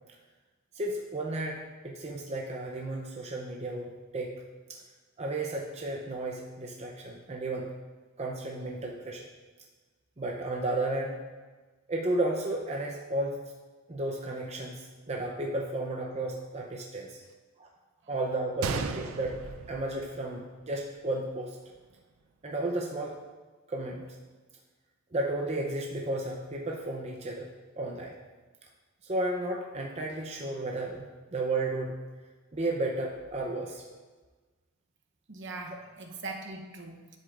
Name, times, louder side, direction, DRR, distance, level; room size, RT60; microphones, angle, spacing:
voice 1, 0.7-4.4 4.7-4.8 5.2-7.7 8.2-9.3 10.2-11.2 11.9-13.3 13.9-17.2 17.6-17.7 18.1-21.6 22.4-23.2 23.7-24.0 25.1-27.5 27.8-28.1 29.0-32.0 32.5-33.8, right 2 dB, 30° right, 0 dB, 0.7 m, -33 dB
Gunshot gunfire, 18.6-20.6 20.9-21.0 21.7-21.9, right 5 dB, 75° right, 0.5 m, -35 dB
voice 2, 35.3-37.2, right 3 dB, 55° right, 2 dB, 0.9 m, -41 dB
10.0 x 8.0 x 2.5 m, 1.3 s
head